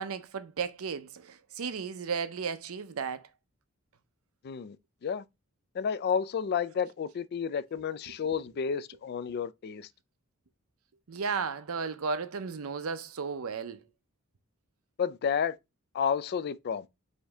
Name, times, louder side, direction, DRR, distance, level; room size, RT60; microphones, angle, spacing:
voice 1, 0.0-3.2 8.1-8.2 11.1-13.8, right 5 dB, 75° right, 0.6 m, -34 dB
voice 2, 4.4-4.8 5.0-5.2 5.7-9.9 15.0-15.6 15.9-16.9, left 7 dB, 45° left, 0.3 m, -31 dB
5.0 x 2.7 x 3.4 m
head